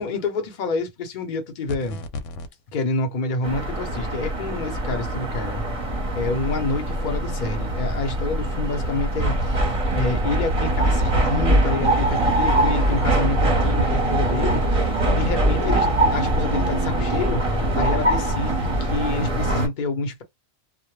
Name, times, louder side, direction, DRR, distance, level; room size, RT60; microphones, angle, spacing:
voice 1, 0.0-2.0 2.7-5.6 6.1-9.7 9.9-20.2, left 3 dB, 50° left, 0.7 m, -28 dB
sound 1, 1.7-2.5, left 3 dB, 90° left, 0.9 m, -33 dB
sound 2, 3.4-19.7, right 1 dB, 35° right, 0.7 m, -22 dB
2.1 x 2.1 x 3.0 m
omnidirectional pair, 1.2 m